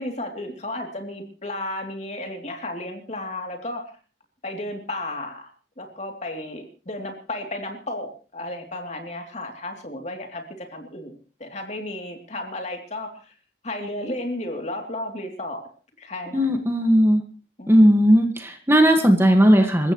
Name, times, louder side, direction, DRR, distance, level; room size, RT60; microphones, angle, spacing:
voice 1, 0.0-3.9 4.4-5.5 5.8-13.3 13.6-15.6 16.0-16.6 17.6-18.1, left 1 dB, 40° left, 3 dB, 3.1 m, -33 dB
voice 2, 16.3-17.2 17.7-19.9, equal, 15° right, 4 dB, 1.8 m, -17 dB
27.0 x 15.0 x 3.2 m, 0.37 s
head